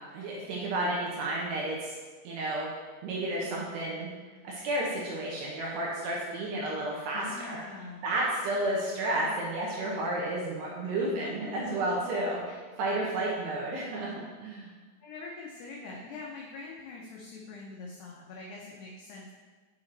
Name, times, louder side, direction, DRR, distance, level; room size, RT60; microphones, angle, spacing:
voice 1, 0.1-2.0 2.2-2.7 3.0-4.1 4.4-7.6 8.0-14.1 14.4-14.7, right 1 dB, 75° right, -4 dB, 2.6 m, -31 dB
voice 2, 7.1-8.0 11.0-11.3 15.0-19.3, left 3 dB, 85° left, -2 dB, 2.3 m, -44 dB
7.5 x 6.0 x 3.9 m, 1.4 s
omnidirectional pair, 5.7 m